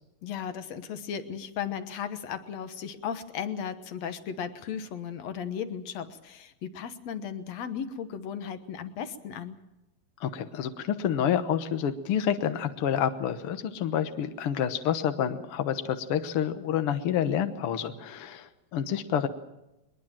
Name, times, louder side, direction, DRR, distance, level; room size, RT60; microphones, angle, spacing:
voice 1, 0.2-9.6, left 8 dB, 60° left, 10 dB, 1.8 m, -36 dB
voice 2, 10.2-19.3, left 9 dB, 85° left, 9 dB, 1.2 m, -28 dB
22.0 x 21.0 x 7.5 m, 0.95 s
omnidirectional pair, 4.3 m